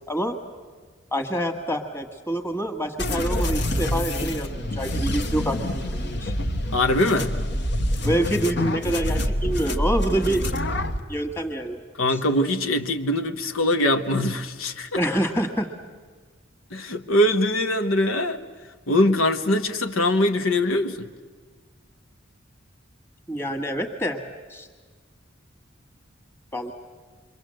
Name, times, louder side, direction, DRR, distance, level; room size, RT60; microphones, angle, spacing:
voice 1, 0.1-0.4 1.1-6.3 8.0-10.4 11.1-11.8 12.1-12.2 15.0-15.7 23.3-24.2 24.5-24.7 26.5-26.7, right 1 dB, 10° left, 6 dB, 1.8 m, -26 dB
sound 1, 3.0-11.0, left 1 dB, 55° left, 1.3 m, -26 dB
voice 2, 6.7-7.3 12.0-15.0 16.7-18.4 18.9-21.1, left 1 dB, 85° left, 7 dB, 1.2 m, -22 dB
28.0 x 23.0 x 7.8 m, 1.5 s
head